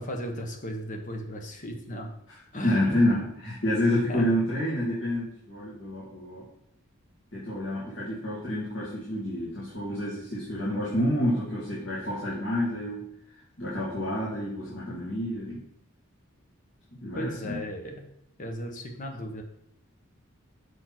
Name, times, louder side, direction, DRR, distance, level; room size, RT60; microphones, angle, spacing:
voice 1, 0.0-2.1 2.5-2.9 4.1-4.3 17.1-18.1 18.4-19.4, equal, 40° left, 3 dB, 1.2 m, -36 dB
voice 2, 2.6-6.4 7.3-13.0 13.6-15.6 17.0-17.6, left 1 dB, 60° left, -9 dB, 2.5 m, -28 dB
6.6 x 4.5 x 6.0 m, 0.74 s
head